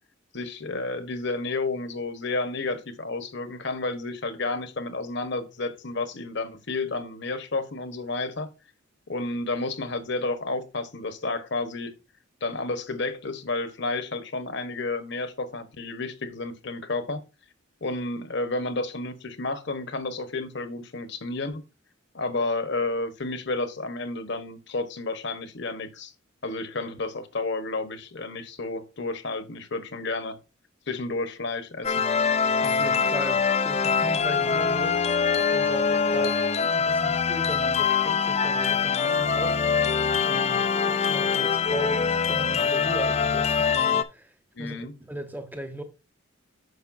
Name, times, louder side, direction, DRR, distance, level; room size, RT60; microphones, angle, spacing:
voice 1, 0.3-8.5 9.1-11.9 12.4-17.2 17.8-21.6 22.1-26.1 26.4-30.4 30.9-31.9 32.5-32.6 44.5-44.9, left 3 dB, 55° left, 1.1 m, -31 dB
sound 1, 31.8-44.0, left 6 dB, 30° left, 0.5 m, -24 dB
voice 2, 32.6-36.4 36.7-45.8, right 1 dB, 10° right, 1.0 m, -38 dB
9.4 x 6.5 x 2.6 m
head